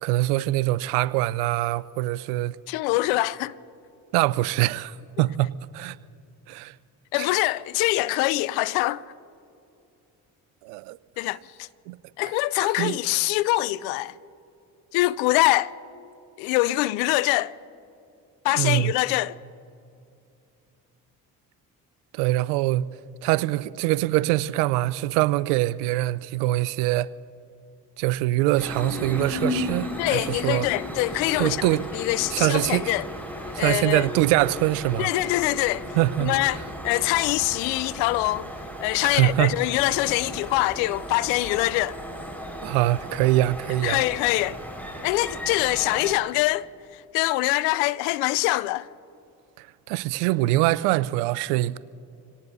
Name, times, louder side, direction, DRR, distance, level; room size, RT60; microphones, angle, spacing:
voice 1, 0.0-2.6 4.1-6.0 6.5-6.7 7.2-7.3 10.6-11.0 11.9-12.0 12.8-13.0 18.6-18.9 22.1-22.8 23.2-27.1 28.0-30.7 31.4-31.8 32.3-32.9 33.5-35.1 36.0-36.3 39.0-39.5 42.6-44.0 49.6-51.8, right 16 dB, 80° right, 0.6 m, -23 dB
voice 2, 2.7-3.5 7.1-9.1 11.2-11.7 12.2-14.2 14.9-15.7 16.4-17.6 18.4-19.4 30.0-31.7 31.9-33.1 33.6-34.1 35.0-35.9 36.2-38.5 38.8-42.0 43.8-44.6 45.0-48.9, left 18 dB, 75° left, 0.6 m, -24 dB
sound 1, 28.6-46.1, left 1 dB, 5° left, 4.8 m, -35 dB
27.0 x 18.5 x 2.7 m
hypercardioid pair, 45°, 45 cm